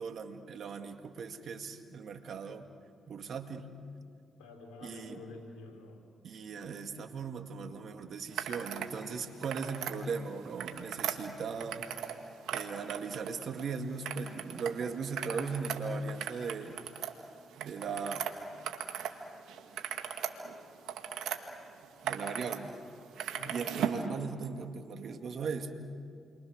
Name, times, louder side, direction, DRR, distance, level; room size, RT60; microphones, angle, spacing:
voice 1, 0.0-2.7 3.1-3.7 4.8-5.2 6.2-11.9 12.5-16.8 17.6-18.2 22.0-22.7 23.5-25.8, right 5 dB, 65° right, 5 dB, 2.2 m, -38 dB
voice 2, 4.4-6.1 23.3-23.9, left 2 dB, 90° left, 2 dB, 4.1 m, -48 dB
sound 1, 8.3-8.9 9.3-10.0 10.4-12.2 12.4-13.6 14.0-14.7 15.0-19.2 19.5-21.4 21.8-22.6 22.9-24.0, right 9 dB, 80° right, 1.8 m, -37 dB
29.5 x 24.0 x 6.6 m, 2.3 s
supercardioid pair, 55°, 0 cm